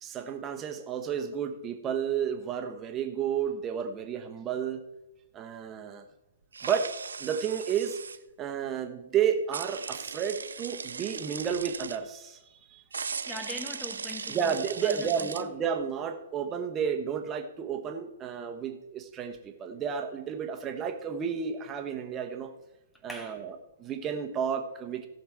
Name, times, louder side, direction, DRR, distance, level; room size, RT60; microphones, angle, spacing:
voice 1, 0.0-4.8 5.3-6.0 6.6-6.9 7.2-8.0 8.4-12.8 14.3-22.5 23.0-25.1, right 7 dB, 20° right, 5 dB, 1.1 m, -32 dB
sound 1, 6.5-8.2 9.5-12.0 12.9-15.4, right 5 dB, 70° right, 0.5 m, -38 dB
voice 2, 13.3-14.5 14.8-15.3 23.1-23.4, left 1 dB, 5° left, 6 dB, 0.6 m, -41 dB
16.5 x 5.8 x 4.6 m, 0.93 s
figure-of-eight pair, 115°, 0 cm